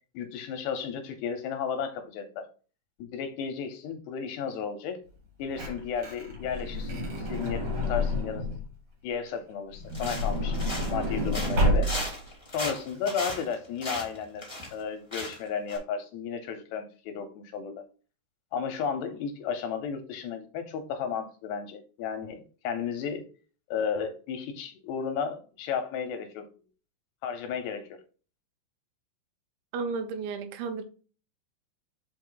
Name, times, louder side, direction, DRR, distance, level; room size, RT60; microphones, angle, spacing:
voice 1, 0.1-2.5 3.0-5.0 5.4-8.5 9.0-10.6 10.9-11.9 12.5-14.4 14.7-17.8 18.5-23.2 23.7-26.5 27.2-28.0, left 6 dB, 80° left, 2.6 m, -33 dB
Truck / Door, 5.2-8.7 9.7-12.3 13.0-13.1 13.2-13.4, left 1 dB, 40° right, 2.5 m, -29 dB
sound 1, 9.9-11.0 11.3-14.8 15.1-15.4 15.7-15.8, left 1 dB, 10° left, 1.3 m, -36 dB
voice 2, 29.7-30.8, right 4 dB, 80° right, 3.2 m, -33 dB
5.4 x 5.3 x 3.8 m
omnidirectional pair, 5.4 m